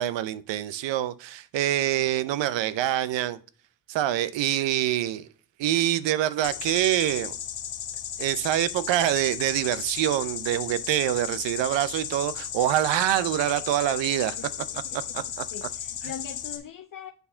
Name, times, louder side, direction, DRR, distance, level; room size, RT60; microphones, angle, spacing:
voice 1, 0.0-3.4 3.9-5.3 5.6-7.3 8.2-14.4 14.9-15.7, right 13 dB, 75° right, 0.7 m, -25 dB
sound 1, 6.4-16.6, left 9 dB, 80° left, 1.5 m, -35 dB
voice 2, 14.4-17.1, left 8 dB, 45° left, 0.7 m, -42 dB
8.2 x 4.2 x 5.5 m
supercardioid pair, 70°, 44 cm